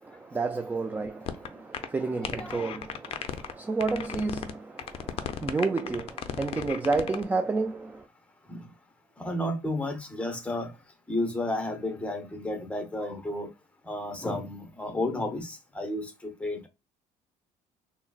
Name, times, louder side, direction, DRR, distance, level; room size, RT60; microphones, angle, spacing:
voice 1, 0.0-8.1, right 3 dB, 15° right, 0.3 m, -31 dB
sound 1, 1.3-1.5 1.7-1.9 2.2-3.5 3.8-4.5 4.8-7.2, left 9 dB, 45° left, 0.5 m, -35 dB
voice 2, 2.2-2.8 8.5-8.7 9.2-10.7 11.1-13.5 13.8-16.7, left 1 dB, 10° left, 0.8 m, -32 dB
3.8 x 2.0 x 2.3 m
cardioid pair, 105°, 13 cm